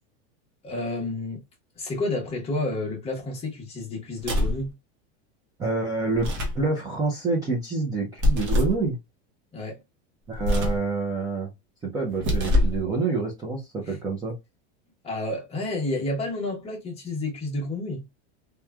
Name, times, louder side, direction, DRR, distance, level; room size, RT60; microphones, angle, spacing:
voice 1, 0.6-1.4 1.8-4.7 9.5-9.8 13.9-14.0 15.0-18.0, left 2 dB, 20° left, 0.9 m, -30 dB
sound 1, 4.2-4.7 6.1-6.6 8.2-8.8 10.3-10.9 12.1-12.8, left 1 dB, 40° right, 0.8 m, -24 dB
voice 2, 5.6-6.3 6.5-9.0 10.3-11.5 11.8-14.3, right 3 dB, 10° right, 0.5 m, -27 dB
3.0 x 2.3 x 2.2 m
supercardioid pair, 160°, 31 cm